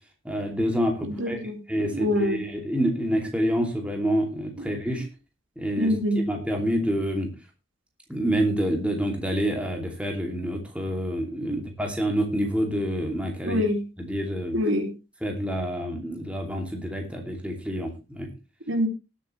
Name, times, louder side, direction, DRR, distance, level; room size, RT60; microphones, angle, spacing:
voice 1, 0.2-1.4 1.7-5.1 5.6-7.3 8.1-13.6 14.0-14.5 15.2-18.3, equal, 5° right, 2 dB, 2.8 m, -27 dB
voice 2, 1.1-2.5 4.6-4.7 5.0-5.1 5.8-6.3 11.5-11.6 13.4-13.8 14.5-14.9 18.7-18.9, left 1 dB, 70° right, 5 dB, 2.9 m, -26 dB
19.0 x 8.4 x 3.3 m, 0.28 s
head